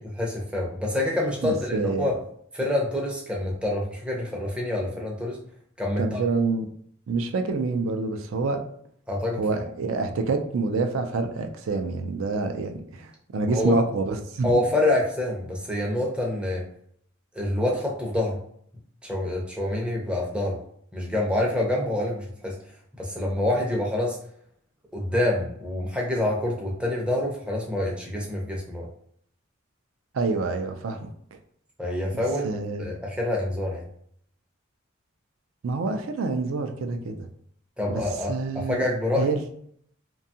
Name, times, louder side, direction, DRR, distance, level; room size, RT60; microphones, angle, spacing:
voice 1, 0.2-2.2 2.5-5.4 5.8-6.2 9.1-9.4 13.5-13.7 14.4-16.7 17.3-18.4 19.0-20.6 20.9-22.6 23.0-24.2 24.9-28.9 31.8-33.8 37.8-39.3, left 1 dB, 5° right, -2 dB, 0.4 m, -26 dB
voice 2, 1.4-2.1 6.0-6.6 7.1-8.6 9.4-14.5 30.1-31.1 32.1-32.9 35.6-37.3 37.9-38.0 38.3-38.8 39.2-39.4, right 3 dB, 70° right, 6 dB, 0.4 m, -27 dB
2.7 x 2.2 x 2.7 m, 0.66 s
head